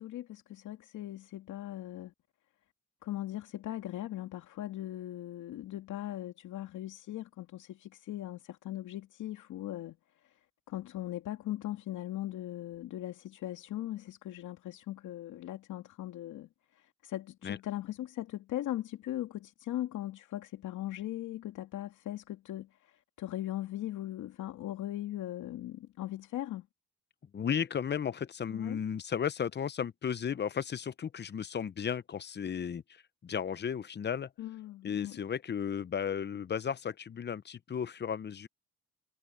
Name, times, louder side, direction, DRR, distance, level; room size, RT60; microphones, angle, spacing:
voice 1, 0.0-2.1 3.0-10.0 10.2-10.4 10.7-26.7 28.5-28.8 34.4-35.2, left 14 dB, 80° left, 2.4 m, -39 dB
voice 2, 27.3-34.3 34.8-38.5, left 7 dB, 35° left, 0.7 m, -34 dB
cardioid pair, 90°, 30 cm